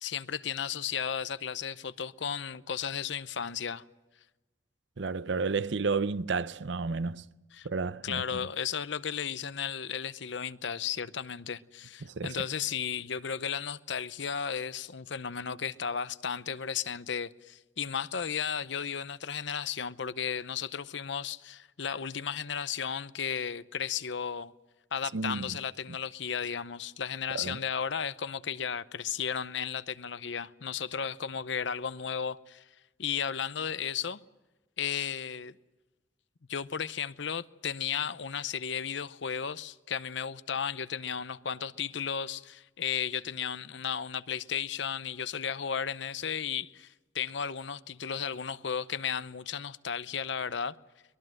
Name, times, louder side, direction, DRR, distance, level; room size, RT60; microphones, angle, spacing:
voice 1, 0.0-3.8 7.5-7.7 8.0-24.5 24.9-32.7 33.0-34.2 34.8-35.5 36.5-50.7, left 7 dB, 70° left, 0.7 m, -34 dB
voice 2, 5.0-7.3 7.6-8.5 12.0-12.4 25.1-25.6 27.3-27.6, right 4 dB, 70° right, 0.7 m, -32 dB
23.0 x 21.0 x 7.7 m
head